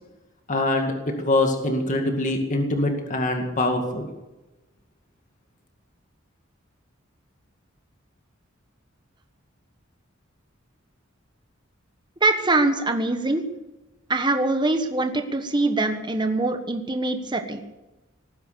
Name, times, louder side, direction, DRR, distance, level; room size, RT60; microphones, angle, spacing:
voice 1, 0.5-4.1, left 2 dB, 40° left, 4 dB, 2.2 m, -24 dB
voice 2, 12.2-13.4 14.1-17.6, right 2 dB, 25° right, 5 dB, 1.4 m, -23 dB
19.5 x 10.0 x 6.9 m, 1.0 s
head